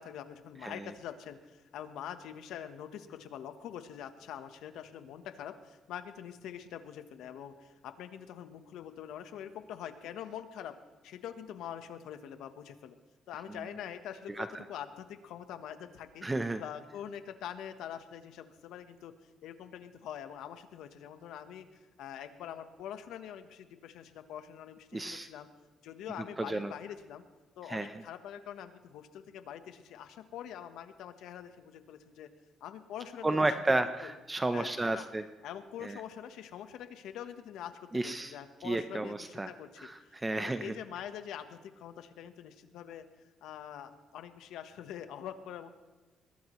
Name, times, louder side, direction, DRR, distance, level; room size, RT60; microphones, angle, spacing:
voice 1, 0.0-10.8 11.0-13.0 13.3-16.3 16.6-19.1 19.4-25.5 25.8-27.2 27.6-32.3 32.6-33.4 33.7-33.8 34.0-34.1 34.5-35.1 35.4-43.0 43.4-45.7, left 9 dB, 85° left, 9 dB, 1.1 m, -44 dB
voice 2, 16.2-16.6 24.9-25.3 26.4-26.7 27.7-28.0 33.2-35.2 35.8-36.0 37.9-38.3 38.6-39.5 39.8-40.8, right 2 dB, 20° right, 9 dB, 0.7 m, -32 dB
22.0 x 17.0 x 3.1 m, 1.2 s
cardioid pair, 90°, 0 cm